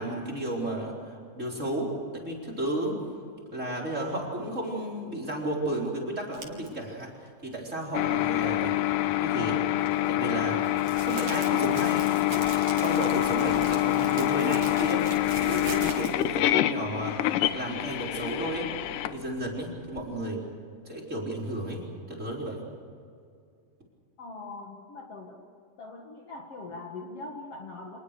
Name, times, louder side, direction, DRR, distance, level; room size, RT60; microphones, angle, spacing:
voice 1, 0.0-3.0 3.5-8.8 9.2-9.8 10.1-10.6 11.0-12.4 12.8-20.4 20.9-22.6, right 1 dB, 20° right, -2 dB, 4.3 m, -33 dB
sound 1, 6.3-6.7 9.8-16.4, right 5 dB, 60° right, 3.7 m, -42 dB
sound 2, 7.9-20.0, left 15 dB, 80° left, 2.3 m, -26 dB
voice 2, 24.2-25.4 25.8-28.0, left 3 dB, 50° left, 1 dB, 2.5 m, -41 dB
27.0 x 20.0 x 6.8 m, 2.3 s
omnidirectional pair, 3.8 m